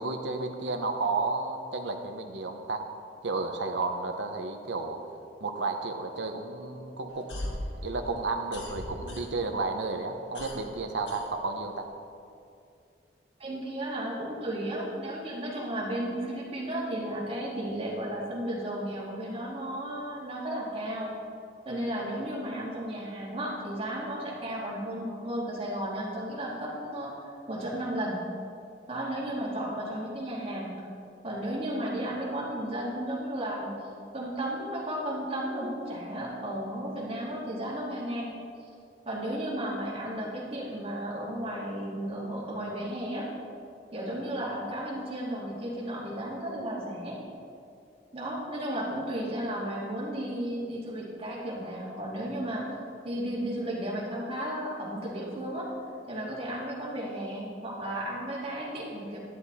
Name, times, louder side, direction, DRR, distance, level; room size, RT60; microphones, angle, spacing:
voice 1, 0.0-2.8 3.2-5.0 5.4-7.4 7.8-11.9, right 3 dB, 85° right, 4 dB, 0.8 m, -32 dB
sound 1, 7.1-9.6 9.9-11.9, left 1 dB, 80° left, 1.5 m, -39 dB
voice 2, 13.4-21.1 21.6-27.1 27.5-28.2 28.9-30.7 31.2-33.7 34.1-38.3 39.0-43.3 43.9-47.2 48.1-52.8 53.0-55.7 56.1-59.2, right 1 dB, 35° right, -5 dB, 2.5 m, -34 dB
10.5 x 10.5 x 4.1 m, 2.4 s
head